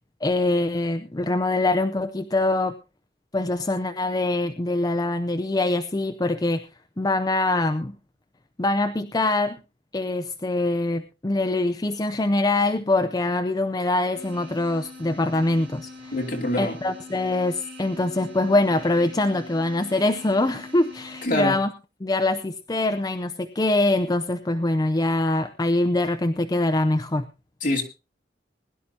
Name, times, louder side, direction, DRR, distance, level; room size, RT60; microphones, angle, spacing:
voice 1, 0.2-2.7 3.3-6.6 7.0-7.9 8.6-9.6 9.9-16.1 16.6-21.7 22.0-27.2, left 2 dB, 20° left, 0.6 m, -24 dB
sound 1, 14.1-21.3, left 2 dB, 90° right, 2.5 m, -43 dB
voice 2, 16.1-16.8 21.2-21.6 27.6-27.8, left 1 dB, 50° left, 2.6 m, -25 dB
21.0 x 11.5 x 2.8 m
head